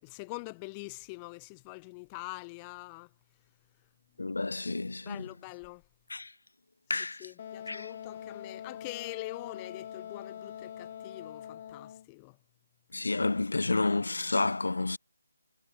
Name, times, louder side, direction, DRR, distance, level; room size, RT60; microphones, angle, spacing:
voice 1, 0.0-3.1 5.1-5.8 7.2-12.4, left 30 dB, 20° left, 4.5 m, -44 dB
voice 2, 4.2-5.3 6.1-6.3 6.9-7.3 7.7-7.9 12.9-15.0, left 3 dB, 70° left, 7.5 m, -30 dB
Wind instrument woodwind instrument, 7.4-12.1, left 9 dB, 35° left, 5.5 m, -43 dB
figure-of-eight pair, 155°, 0 cm